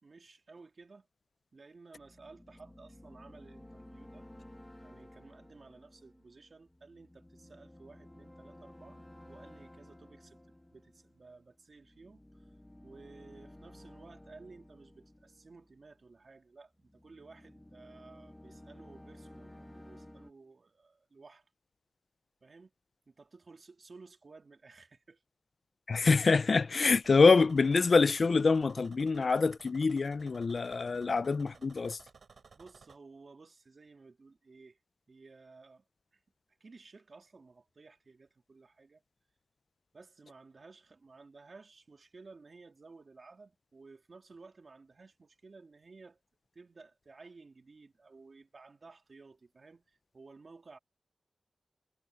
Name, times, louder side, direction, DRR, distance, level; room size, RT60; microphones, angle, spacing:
voice 1, 0.0-1.1 1.5-4.3 4.8-10.4 10.7-12.5 12.8-21.4 22.4-22.7 23.1-25.2 32.5-34.8 35.1-35.8 36.1-36.2 36.6-39.0 39.9-46.2 46.5-50.8, right 3 dB, 55° right, 3.0 m, -55 dB
sound 1, 1.9-16.2 16.8-20.3, left 1 dB, 10° left, 2.0 m, -55 dB
voice 2, 25.9-32.0, left 4 dB, 60° left, 0.4 m, -25 dB
sound 2, 26.9-33.0, right 5 dB, 75° right, 6.3 m, -58 dB
wide cardioid pair, 95°, 0 cm